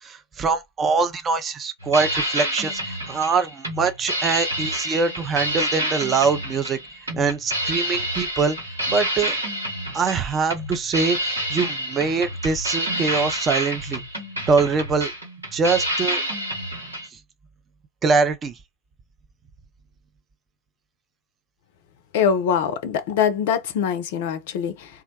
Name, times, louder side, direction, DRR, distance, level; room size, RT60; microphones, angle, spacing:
voice 1, 0.0-6.8 7.1-8.6 8.9-9.3 9.9-14.0 14.5-15.1 15.5-16.2 18.0-18.6, right 4 dB, 25° right, 0.5 m, -23 dB
sound 1, 1.8-17.1, equal, 80° right, 1.3 m, -28 dB
voice 2, 22.1-24.9, left 7 dB, 50° left, 0.4 m, -23 dB
2.3 x 2.1 x 2.6 m
figure-of-eight pair, 90°, 0 cm